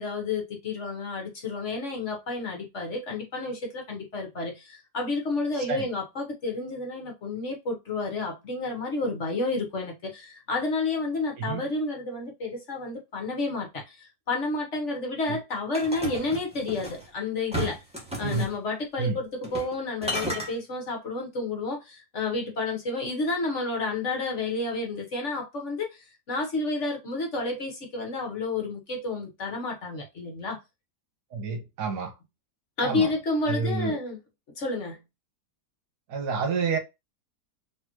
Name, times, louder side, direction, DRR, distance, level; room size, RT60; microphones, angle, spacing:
voice 1, 0.0-17.8 18.2-30.6 32.8-34.2 34.6-35.0, left 3 dB, 45° left, 1.4 m, -30 dB
voice 2, 5.6-5.9 11.4-11.7 15.3-15.4 18.2-18.5 19.0-19.2 31.3-32.1 32.8-33.1 33.5-34.0 36.1-36.8, right 4 dB, 70° right, 1.6 m, -29 dB
sound 1, 15.7-17.0 17.5-18.5 19.4-19.8 20.0-20.5, right 1 dB, 5° right, 1.3 m, -33 dB
4.1 x 3.3 x 3.0 m
omnidirectional pair, 1.8 m